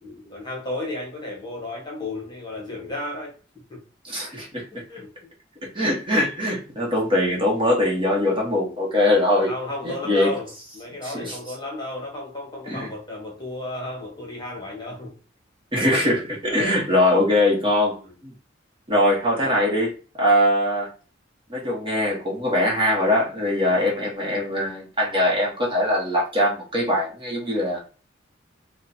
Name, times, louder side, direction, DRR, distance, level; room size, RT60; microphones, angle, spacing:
voice 1, 0.0-3.3 3.7-3.8 4.7-5.1 9.4-15.2 16.5-16.8 18.0-18.1 19.4-19.7 23.7-23.9, left 2 dB, 25° left, 1.3 m, -34 dB
voice 2, 4.0-4.8 5.6-9.5 9.8-10.4 11.0-11.4 12.7-12.9 15.7-18.3 18.9-19.9 20.2-20.9 21.5-27.8, left 1 dB, 25° right, 1.2 m, -22 dB
4.7 x 2.3 x 2.7 m
head